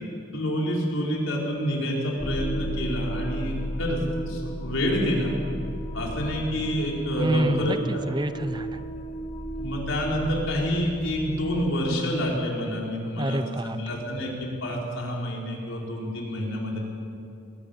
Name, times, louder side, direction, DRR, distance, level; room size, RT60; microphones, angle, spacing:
voice 1, 0.3-5.3 5.9-8.1 9.5-16.8, equal, 75° left, -2 dB, 4.8 m, -28 dB
sound 1, 2.2-11.7, right 1 dB, 25° left, 0.9 m, -34 dB
voice 2, 7.2-8.8 13.2-13.8, right 1 dB, 20° right, 12 dB, 0.6 m, -27 dB
21.5 x 16.5 x 7.3 m, 2.6 s
head